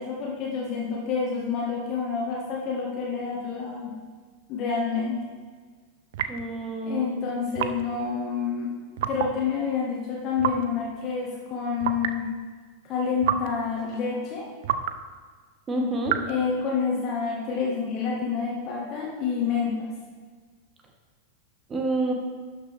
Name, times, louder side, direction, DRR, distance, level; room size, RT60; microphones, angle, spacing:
voice 1, 0.0-3.9 4.5-5.2 6.8-8.7 9.1-12.3 12.9-14.5 16.2-19.9, left 5 dB, 35° left, -3 dB, 1.6 m, -28 dB
sound 1, 6.1-6.5 7.5-7.9 9.0-9.4 10.4-10.7 11.8-12.2 13.2-13.6 14.6-15.0 16.0-16.4, right 10 dB, 55° right, 0.5 m, -28 dB
voice 2, 6.3-7.1 15.7-16.1 21.7-22.1, right 2 dB, 20° right, 2 dB, 1.5 m, -28 dB
12.5 x 5.9 x 3.4 m, 1.5 s
figure-of-eight pair, 90°, 0 cm